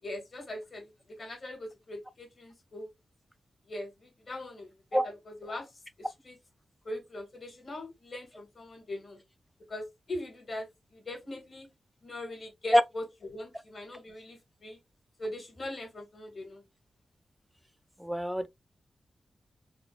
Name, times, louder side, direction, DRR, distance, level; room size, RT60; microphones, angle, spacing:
voice 1, 0.0-2.9 3.7-5.7 6.0-6.4 6.8-9.2 9.7-10.7 10.9-11.7 12.0-14.8 15.2-16.6, left 1 dB, 50° left, 1.7 m, -41 dB
voice 2, 18.0-18.5, equal, ahead, 0.4 m, -24 dB
3.9 x 2.2 x 2.8 m
cardioid pair, 65°, 0 cm